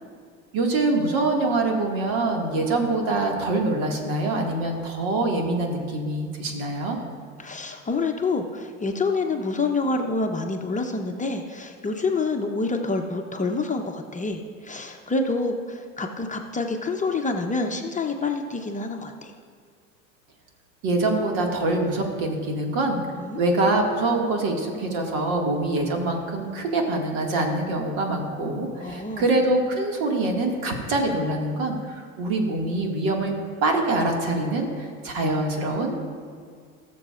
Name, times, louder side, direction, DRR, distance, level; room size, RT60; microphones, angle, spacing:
voice 1, 0.5-7.0 20.8-23.0 23.4-33.3 33.6-35.9, right 2 dB, 60° right, 1 dB, 2.2 m, -24 dB
voice 2, 7.4-19.3 23.2-23.4 28.8-29.3, left 3 dB, 20° left, 3 dB, 0.8 m, -27 dB
19.5 x 6.8 x 2.5 m, 2.1 s
hypercardioid pair, 80°, 40 cm